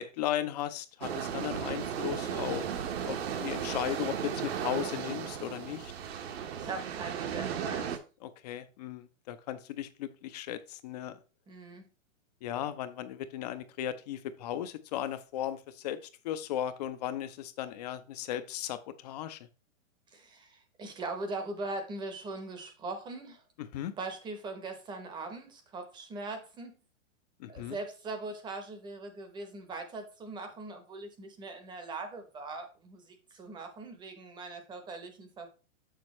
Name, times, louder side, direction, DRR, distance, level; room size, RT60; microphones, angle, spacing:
voice 1, 0.0-2.7 3.0-5.9 8.2-11.2 12.4-16.0 16.2-19.5 23.6-23.9 27.4-27.8, left 11 dB, 30° left, 12 dB, 0.6 m, -36 dB
sound 1, 1.0-8.0, right 8 dB, 50° right, 1.0 m, -35 dB
voice 2, 6.6-7.9 11.5-11.8 20.1-23.4 24.0-26.7 27.5-35.5, right 3 dB, 10° right, 7 dB, 0.9 m, -41 dB
6.6 x 6.5 x 3.1 m, 0.33 s
hypercardioid pair, 145°, 39 cm